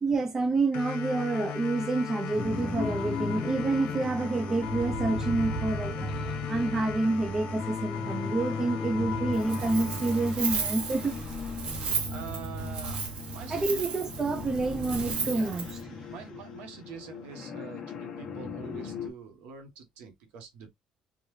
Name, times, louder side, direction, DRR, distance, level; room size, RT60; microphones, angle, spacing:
voice 1, 0.0-6.2 6.5-11.1 13.5-15.7, right 3 dB, 20° right, 0.5 m, -28 dB
sound 1, 0.7-11.7, left 5 dB, 65° left, 1.1 m, -36 dB
sound 2, 2.4-19.1, left 2 dB, 30° left, 1.0 m, -38 dB
Wind, 9.3-15.8, right 5 dB, 45° right, 1.1 m, -35 dB
voice 2, 11.8-13.0 13.3-13.8 15.3-15.5 16.1-20.7, right 6 dB, 75° right, 1.4 m, -45 dB
3.8 x 2.5 x 3.2 m
cardioid pair, 170°, 2 cm